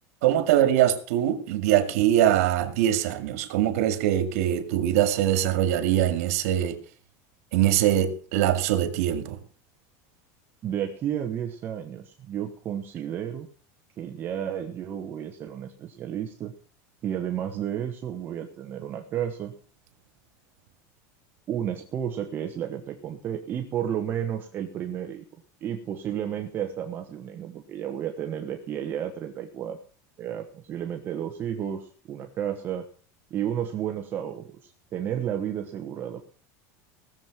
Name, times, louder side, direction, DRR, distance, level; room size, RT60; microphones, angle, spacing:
voice 1, 0.2-6.8 7.5-9.4, right 11 dB, 75° right, 2.2 m, -23 dB
voice 2, 10.6-13.5 14.0-16.5 17.0-19.5 21.5-25.2 25.6-29.8 30.2-32.9 33.3-36.2, right 9 dB, 25° right, 1.2 m, -32 dB
18.0 x 7.5 x 6.1 m
cardioid pair, 175°, 8 cm